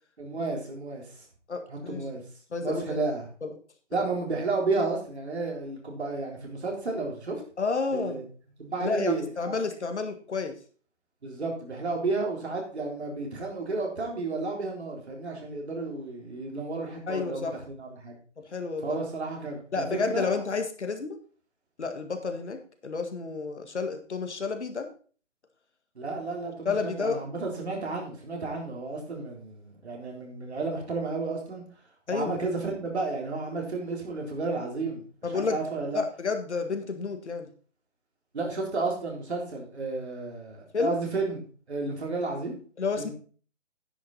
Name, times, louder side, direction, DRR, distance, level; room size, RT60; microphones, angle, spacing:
voice 1, 0.2-1.1 1.7-2.2 2.6-3.3 3.9-7.4 7.9-8.2 8.6-9.5 11.2-18.2 18.8-20.4 26.0-31.6 32.1-36.0 38.3-41.4 41.7-42.6 43.0-43.1, right 3 dB, 60° right, 0 dB, 3.9 m, -32 dB
voice 2, 1.5-2.0 2.5-3.0 3.4-3.5 7.6-8.2 8.8-10.5 17.1-17.5 18.5-19.0 19.7-21.2 21.8-24.9 26.6-27.2 32.1-32.3 35.2-35.6 35.9-37.5 40.7-40.9 42.8-43.1, left 4 dB, 65° left, 6 dB, 1.8 m, -30 dB
10.0 x 8.7 x 4.0 m, 0.42 s
figure-of-eight pair, 150°, 36 cm